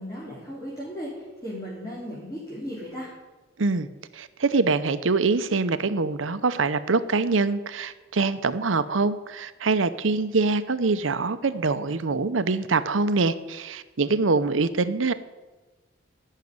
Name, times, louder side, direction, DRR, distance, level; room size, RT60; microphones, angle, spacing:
voice 1, 0.0-3.1, equal, 15° left, -7 dB, 3.6 m, -36 dB
voice 2, 4.1-15.1, right 3 dB, 85° right, 12 dB, 0.8 m, -24 dB
15.0 x 6.6 x 9.5 m, 1.2 s
head